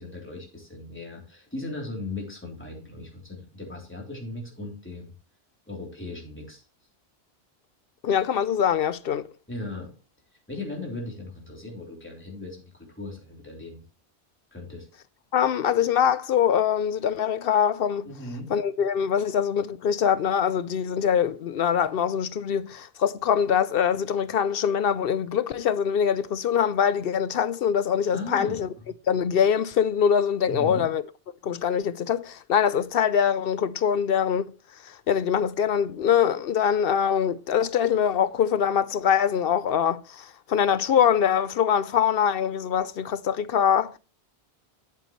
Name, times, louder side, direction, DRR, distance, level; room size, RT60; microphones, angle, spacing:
voice 1, 0.0-5.1 5.7-6.6 9.5-9.9 10.5-13.8 14.5-14.9 18.0-18.5 28.1-28.9 30.5-30.9, left 2 dB, 10° left, 3.4 m, -37 dB
voice 2, 8.0-9.3 15.3-18.1 18.5-28.7 29.1-31.0 31.4-34.4 34.9-44.0, left 8 dB, 65° left, 0.8 m, -23 dB
11.5 x 8.2 x 3.1 m
omnidirectional pair, 1.1 m